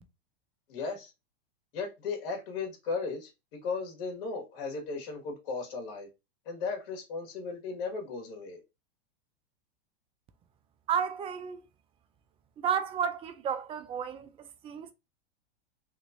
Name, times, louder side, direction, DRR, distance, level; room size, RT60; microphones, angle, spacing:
voice 1, 0.7-1.1 1.7-6.1 6.4-8.6, left 4 dB, 60° left, 1.7 m, -36 dB
voice 2, 10.9-11.6 12.6-14.9, right 7 dB, 20° right, 0.3 m, -32 dB
3.3 x 2.9 x 2.6 m
hypercardioid pair, 115°, 31 cm